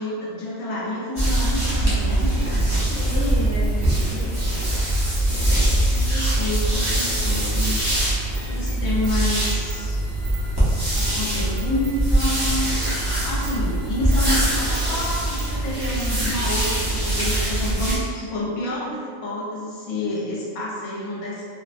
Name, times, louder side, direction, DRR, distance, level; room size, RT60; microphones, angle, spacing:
voice 1, 0.0-2.3 5.8-7.8 8.1-10.0 10.9-21.4, left 2 dB, 70° left, -5 dB, 1.0 m, -29 dB
sound 1, 1.2-18.0, right 1 dB, 30° right, 0.4 m, -22 dB
sound 2, 1.9-17.6, right 4 dB, 60° right, 0.9 m, -43 dB
voice 2, 2.9-4.6 7.3-7.7, left 2 dB, 35° left, -13 dB, 0.5 m, -32 dB
2.7 x 2.1 x 2.4 m, 2.1 s
omnidirectional pair, 1.5 m